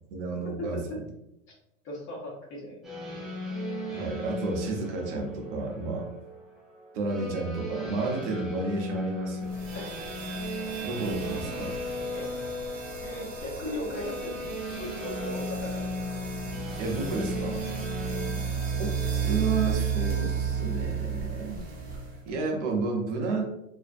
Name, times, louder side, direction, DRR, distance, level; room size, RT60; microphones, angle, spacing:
voice 1, 0.1-0.8 3.8-6.1 6.9-9.5 10.8-11.8 16.8-17.6 18.8-18.9 19.2-21.6 22.3-23.4, right 3 dB, 65° right, 1 dB, 0.7 m, -31 dB
voice 2, 1.8-2.8 9.7-9.9 12.1-12.3 13.0-15.9 18.0-18.3, left 1 dB, 30° left, -3 dB, 0.9 m, -37 dB
sound 1, 2.8-20.9, left 1 dB, ahead, 0.4 m, -37 dB
sound 2, 9.4-22.3, right 6 dB, 25° right, 0.8 m, -33 dB
2.5 x 2.2 x 2.5 m, 0.83 s
hypercardioid pair, 110°, 38 cm